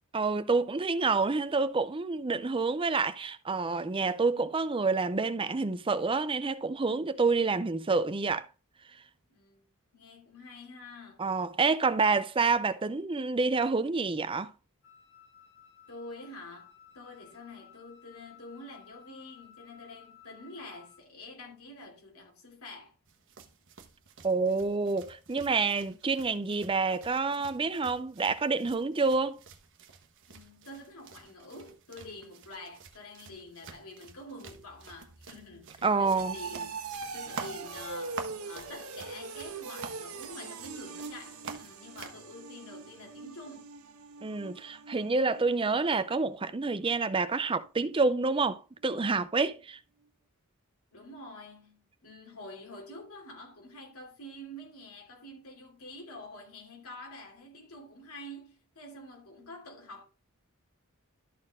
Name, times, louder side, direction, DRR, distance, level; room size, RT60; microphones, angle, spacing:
voice 1, 0.1-8.5 11.2-14.5 24.2-29.4 35.8-36.4 44.2-49.8, right 4 dB, 25° right, 0.5 m, -28 dB
voice 2, 9.3-11.2 15.9-22.9 30.3-36.8 37.1-43.7 50.9-60.0, left 1 dB, 80° left, 3.0 m, -47 dB
Wind instrument woodwind instrument, 14.8-21.1, left 8 dB, 65° left, 2.4 m, -56 dB
sound 1, 23.1-42.2, right 5 dB, 60° right, 1.2 m, -49 dB
sound 2, 34.5-47.2 47.5-47.9 48.3-48.4, right 4 dB, 85° right, 1.5 m, -43 dB
12.5 x 4.4 x 3.6 m
head